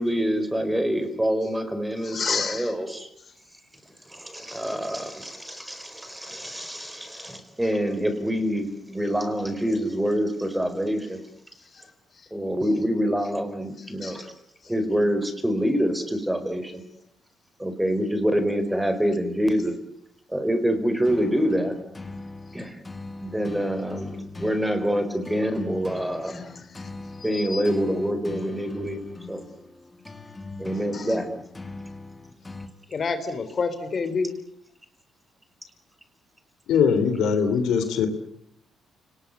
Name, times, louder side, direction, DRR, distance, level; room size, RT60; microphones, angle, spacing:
voice 1, 0.0-3.1 4.1-11.2 12.3-14.3 14.7-16.8 17.6-19.7 20.3-21.7 22.5-22.8 23.2-26.3 27.2-29.0 29.3-29.4 30.6-31.3, equal, 5° right, 9 dB, 4.6 m, -26 dB
voice 2, 2.0-2.7 14.0-14.2 26.3-26.4 27.3-27.6 30.9-31.1 32.9-34.3, left 4 dB, 45° left, 11 dB, 3.5 m, -28 dB
sound 1, 21.0-32.7, left 3 dB, 20° left, 2.4 m, -41 dB
voice 3, 36.7-38.1, left 6 dB, 85° left, 9 dB, 3.2 m, -21 dB
29.5 x 20.0 x 8.3 m, 0.72 s
cardioid pair, 90°, 0 cm